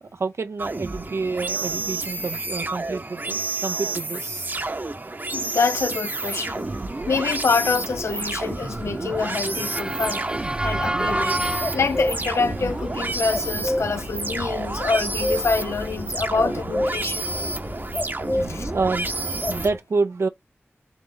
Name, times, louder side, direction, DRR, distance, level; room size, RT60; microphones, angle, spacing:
voice 1, 0.0-4.7 10.6-10.9 18.4-19.1 19.4-20.3, right 4 dB, 80° right, 0.5 m, -28 dB
sound 1, 0.6-19.7, right 2 dB, 45° right, 0.8 m, -30 dB
voice 2, 5.3-6.7 7.1-10.3 10.6-11.4 11.7-17.3 18.4-18.7, left 4 dB, 85° left, 0.6 m, -26 dB
Motor vehicle (road) / Siren, 5.8-13.1, right 1 dB, 20° right, 0.5 m, -32 dB
sound 2, 10.7-19.8, left 1 dB, 40° left, 0.8 m, -31 dB
3.9 x 3.0 x 3.9 m
cardioid pair, 40°, 5 cm